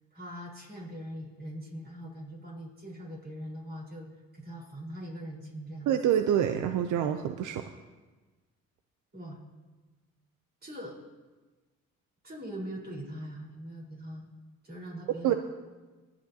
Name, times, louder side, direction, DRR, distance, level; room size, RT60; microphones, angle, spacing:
voice 1, 0.1-4.1 4.3-5.9 9.1-9.4 10.6-11.0 12.2-14.3 14.6-15.4, equal, 35° right, -2 dB, 4.2 m, -41 dB
voice 2, 5.9-7.7 15.2-15.3, right 10 dB, 80° right, 7 dB, 0.6 m, -26 dB
23.0 x 9.1 x 2.8 m, 1.3 s
cardioid pair, 90°, 30 cm